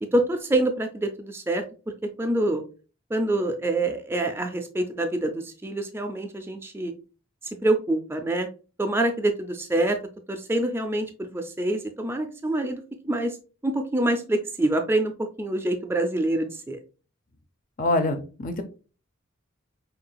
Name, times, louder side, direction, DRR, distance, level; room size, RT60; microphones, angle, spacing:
voice 1, 0.0-1.6 2.2-2.6 3.1-6.9 7.6-8.5 8.8-10.0 10.3-13.4 13.6-15.1 15.4-16.8, right 1 dB, 10° right, 5 dB, 0.4 m, -26 dB
voice 2, 17.8-18.6, left 2 dB, 40° left, 6 dB, 0.5 m, -25 dB
5.6 x 2.8 x 2.2 m, 0.34 s
head